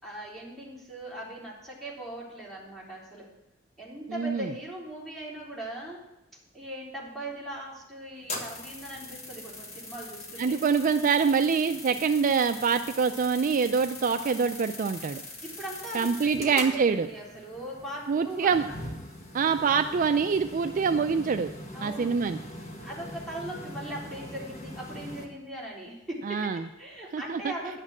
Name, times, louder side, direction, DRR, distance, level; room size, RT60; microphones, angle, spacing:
voice 1, 0.0-3.3 3.8-6.0 6.5-10.6 15.4-18.6 21.7-22.2 22.8-27.8, right 1 dB, ahead, -6 dB, 3.6 m, -39 dB
voice 2, 4.1-4.5 10.4-15.2 15.9-17.1 18.1-18.6 19.3-21.5 21.8-22.4 26.2-26.7 27.1-27.4, right 5 dB, 40° right, 8 dB, 0.4 m, -25 dB
sound 1, 8.2-25.3, left 1 dB, 35° left, 1.8 m, -42 dB
11.0 x 6.6 x 7.3 m, 0.96 s
head